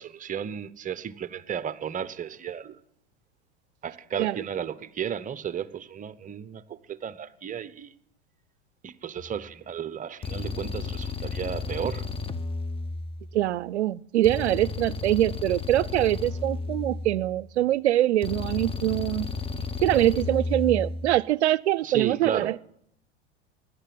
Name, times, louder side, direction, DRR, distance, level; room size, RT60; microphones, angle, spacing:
voice 1, 0.0-2.8 3.8-7.9 8.8-12.1 21.8-22.5, right 8 dB, 25° right, 0.9 m, -34 dB
sound 1, 9.2-9.5 10.2-13.5 14.2-17.5 18.2-21.2, left 4 dB, 15° left, 1.1 m, -33 dB
voice 2, 13.3-19.3 19.8-22.6, right 14 dB, 85° right, 0.5 m, -24 dB
16.5 x 11.0 x 7.7 m
hypercardioid pair, 95°, 33 cm